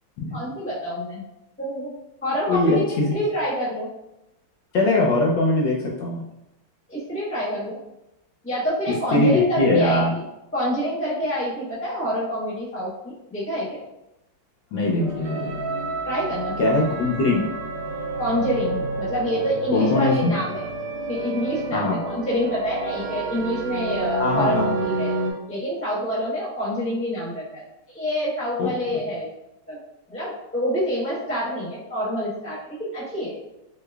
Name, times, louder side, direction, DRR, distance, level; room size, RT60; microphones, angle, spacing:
voice 1, 0.3-1.2 1.6-1.9 2.2-3.9 6.9-7.8 8.4-10.0 10.5-13.8 16.1-16.5 18.2-20.7 21.1-25.1 25.5-27.6 27.9-29.3 29.7-29.8 30.1-33.4, equal, 10° left, -9 dB, 1.0 m, -27 dB
voice 2, 2.5-3.2 4.7-6.2 9.1-10.1 14.7-15.5 16.6-17.5 19.7-20.3 21.7-22.0 24.2-24.9 28.6-28.7, left 2 dB, 75° left, -3 dB, 1.3 m, -21 dB
sound 1, 15.0-25.3, right 3 dB, 75° right, 1.4 m, -29 dB
4.7 x 2.1 x 2.3 m, 0.89 s
omnidirectional pair, 2.2 m